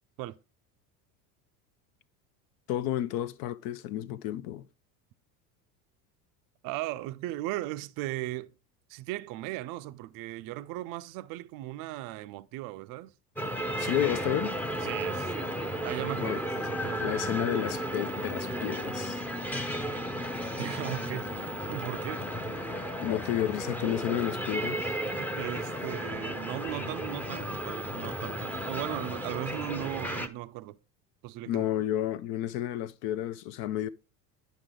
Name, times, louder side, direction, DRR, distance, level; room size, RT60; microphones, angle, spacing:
voice 1, 2.7-4.7 13.8-14.6 16.2-16.4 17.0-19.2 23.0-25.0 31.5-33.9, left 12 dB, 50° left, 0.5 m, -31 dB
voice 2, 6.6-8.5 8.9-13.1 14.8-15.5 15.8-17.3 20.6-21.3 21.7-22.2 25.3-30.8 31.2-31.7, right 16 dB, 50° right, 0.5 m, -37 dB
sound 1, 13.4-30.3, right 1 dB, 5° left, 0.6 m, -34 dB
10.0 x 5.3 x 3.7 m
hypercardioid pair, 90°, 46 cm